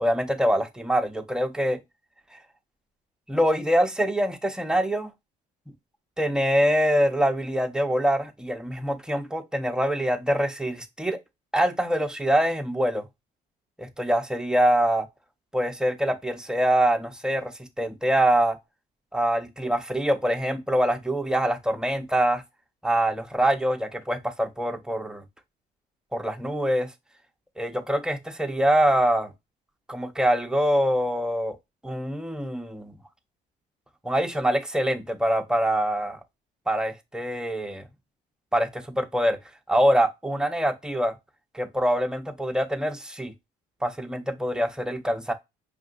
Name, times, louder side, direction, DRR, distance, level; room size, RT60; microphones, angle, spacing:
voice 1, 0.0-1.8 3.3-5.1 6.2-11.2 11.5-13.1 13.8-15.1 15.5-18.6 19.1-22.4 22.8-25.2 26.1-26.9 27.6-29.3 29.9-31.6 31.8-32.9 34.0-36.2 36.7-37.8 38.5-39.4 39.7-41.1 41.5-43.3 43.8-45.3, equal, 5° right, 0.7 m, -24 dB
5.6 x 2.7 x 2.4 m
cardioid pair, 110°, 17 cm